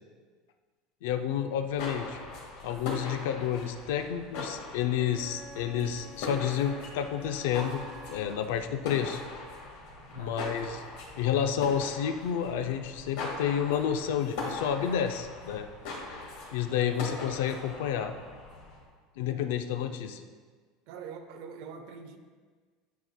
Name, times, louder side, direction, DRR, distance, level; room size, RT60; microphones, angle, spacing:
voice 1, 1.0-2.2 2.6-7.8 8.1-9.2 10.1-10.8 11.2-15.7 16.5-18.1 19.2-20.2, left 9 dB, 85° left, 7 dB, 0.4 m, -30 dB
sound 1, 1.5-18.9, left 3 dB, 65° left, 1.7 m, -41 dB
Wind instrument woodwind instrument, 4.9-8.5, left 1 dB, 10° right, 0.7 m, -49 dB
voice 2, 10.1-10.5 16.7-17.3 20.9-22.2, right 6 dB, 55° right, 7 dB, 0.6 m, -45 dB
10.5 x 4.2 x 2.2 m, 1.5 s
cardioid pair, 170°, 0 cm